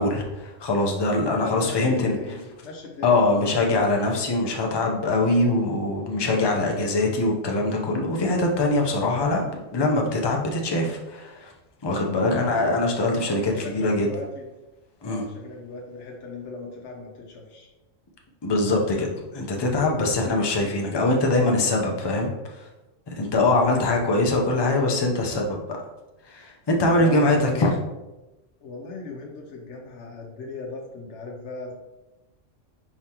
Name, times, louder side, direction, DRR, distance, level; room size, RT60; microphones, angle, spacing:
voice 1, 0.0-2.2 3.0-11.5 11.8-14.1 15.0-15.2 18.4-22.6 23.1-25.8 26.3-27.7, left 2 dB, 35° left, 0 dB, 0.4 m, -23 dB
voice 2, 1.3-3.8 12.2-12.7 13.4-14.5 15.0-17.7 23.6-23.9 26.9-27.7 28.6-31.7, left 3 dB, 65° left, -1 dB, 0.9 m, -37 dB
4.7 x 3.7 x 2.8 m, 1.0 s
omnidirectional pair, 1.3 m